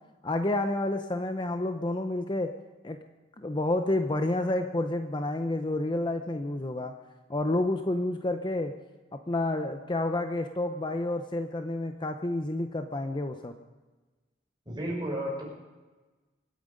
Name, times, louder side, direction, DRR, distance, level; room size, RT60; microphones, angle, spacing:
voice 1, 0.2-2.5 2.8-3.0 3.4-6.9 7.3-8.7 9.1-13.5, left 2 dB, 25° left, 6 dB, 0.7 m, -29 dB
voice 2, 14.7-15.4, right 1 dB, 25° right, -2 dB, 5.6 m, -32 dB
24.5 x 9.2 x 5.2 m, 1.2 s
head